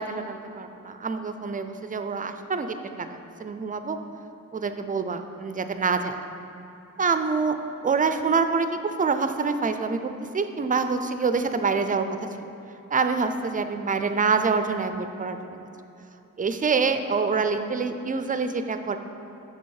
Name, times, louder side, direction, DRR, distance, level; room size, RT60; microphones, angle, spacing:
voice 1, 0.0-4.0 4.5-6.2 7.0-7.6 7.8-12.5 12.9-15.4 16.4-19.0, right 4 dB, 25° right, 8 dB, 0.4 m, -26 dB
7.0 x 6.6 x 4.7 m, 3.0 s
wide cardioid pair, 145°, 32 cm